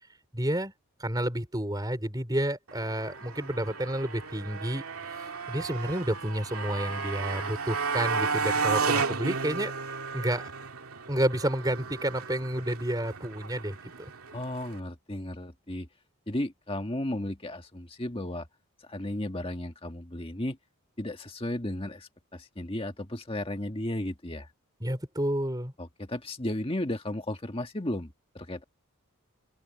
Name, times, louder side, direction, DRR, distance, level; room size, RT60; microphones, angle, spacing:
voice 1, 0.3-0.7 1.0-4.8 5.5-10.5 11.1-14.1 24.8-25.7, right 1 dB, 15° right, 4.6 m, -30 dB
Motorcycle, 2.7-14.8, right 5 dB, 80° right, 2.4 m, -33 dB
voice 2, 14.3-15.9 16.3-18.5 18.9-20.6 21.0-24.5 25.8-28.6, left 1 dB, 25° left, 1.7 m, -34 dB
open air
head